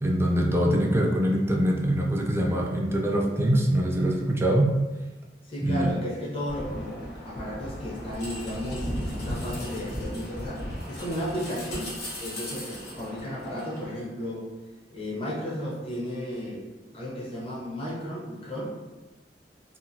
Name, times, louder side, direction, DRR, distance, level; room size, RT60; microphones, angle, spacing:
voice 1, 0.0-4.7 5.6-5.9, right 1 dB, 15° right, -1 dB, 0.4 m, -23 dB
voice 2, 5.5-11.9 12.2-14.5 14.9-16.7 16.9-18.7, equal, 35° left, -6 dB, 0.8 m, -34 dB
sound 1, 6.5-13.9, left 1 dB, 65° left, 0.9 m, -36 dB
2.8 x 2.5 x 2.6 m, 1.1 s
head